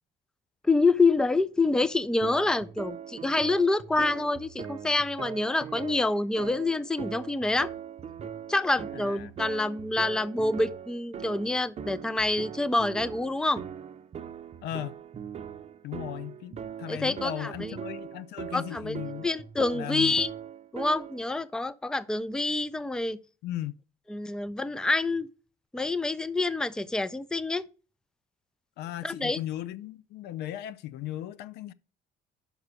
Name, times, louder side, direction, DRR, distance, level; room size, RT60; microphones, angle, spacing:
voice 1, 0.6-7.7 8.5-13.6 16.9-17.5 18.5-19.0 19.2-20.3 20.7-23.2 24.1-25.3 25.7-27.6 29.0-29.4, left 2 dB, 5° left, 0.4 m, -27 dB
sound 1, 2.2-21.3, right 8 dB, 40° right, 0.7 m, -41 dB
voice 2, 8.9-9.3 14.6-15.0 15.8-19.3 19.7-20.2 23.4-23.8 28.8-31.7, left 13 dB, 80° left, 0.5 m, -37 dB
5.9 x 5.5 x 6.7 m
cardioid pair, 110°, 17 cm